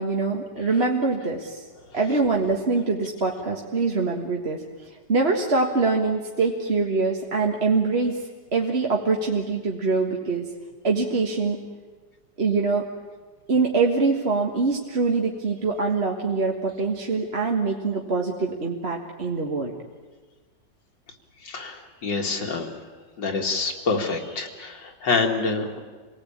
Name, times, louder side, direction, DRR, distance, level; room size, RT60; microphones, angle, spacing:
voice 1, 0.0-1.6 1.9-8.2 8.5-10.5 10.8-11.6 12.4-12.9 13.5-19.7, right 4 dB, 35° right, 0 dB, 1.8 m, -24 dB
voice 2, 21.4-22.8 23.2-25.8, left 4 dB, 75° left, 2 dB, 2.8 m, -26 dB
27.0 x 18.5 x 8.7 m, 1.4 s
omnidirectional pair, 2.0 m